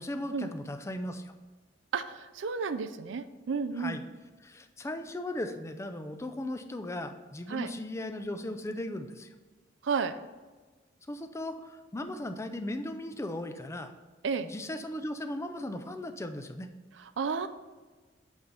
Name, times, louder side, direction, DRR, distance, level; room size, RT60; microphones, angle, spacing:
voice 1, 0.0-1.3 3.8-4.0 4.4-9.3 11.1-13.9 14.4-16.7, left 1 dB, 15° left, 8 dB, 0.4 m, -37 dB
voice 2, 1.9-4.0 7.5-7.7 9.8-10.2 14.2-14.5 17.0-17.5, right 5 dB, 75° right, 11 dB, 0.4 m, -32 dB
8.1 x 3.3 x 5.3 m, 1.3 s
head